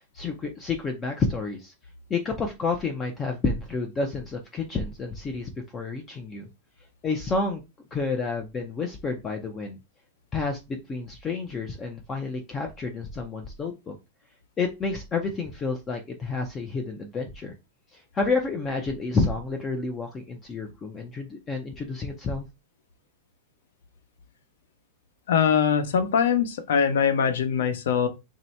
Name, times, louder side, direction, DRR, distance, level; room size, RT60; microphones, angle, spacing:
voice 1, 0.1-1.7 2.1-6.5 7.0-7.6 7.9-9.8 10.3-13.9 14.6-17.5 17.9-22.5, left 4 dB, 15° left, 0.4 m, -30 dB
voice 2, 25.3-28.1, left 7 dB, 75° left, 0.8 m, -22 dB
3.1 x 2.7 x 4.3 m
supercardioid pair, 180°, 0 cm